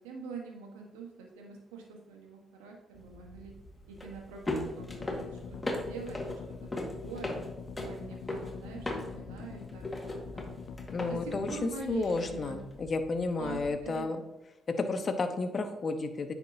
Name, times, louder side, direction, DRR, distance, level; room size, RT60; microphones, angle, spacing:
voice 1, 0.0-3.5 3.9-5.4 5.7-7.3 7.8-10.5 11.0-12.6 13.4-14.1, right 5 dB, 85° right, 1 dB, 1.3 m, -44 dB
sound 1, 2.9-13.9, left 1 dB, 20° left, 1.8 m, -40 dB
sound 2, 4.8-11.5, left 6 dB, 65° left, 0.4 m, -45 dB
voice 2, 10.9-14.2 14.7-16.3, left 3 dB, 45° left, 8 dB, 0.9 m, -32 dB
9.4 x 5.9 x 2.8 m, 0.99 s
hypercardioid pair, 45°, 0 cm